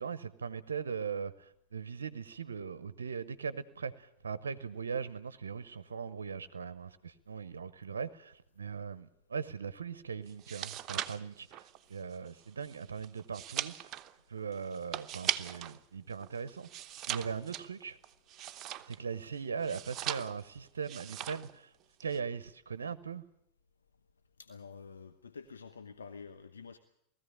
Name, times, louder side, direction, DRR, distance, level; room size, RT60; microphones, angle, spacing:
voice 1, 0.0-13.9 14.3-16.7 17.1-18.0 18.9-21.7 22.0-23.2, right 6 dB, 85° right, 15 dB, 0.7 m, -39 dB
sound 1, 10.3-15.8 16.1-19.1 19.6-20.5 20.8-21.5 21.8-22.2, right 11 dB, 40° right, 0.9 m, -39 dB
voice 2, 24.4-26.8, left 5 dB, 85° left, 9 dB, 0.9 m, -48 dB
19.0 x 14.5 x 9.9 m, 0.77 s
hypercardioid pair, 90°, 0 cm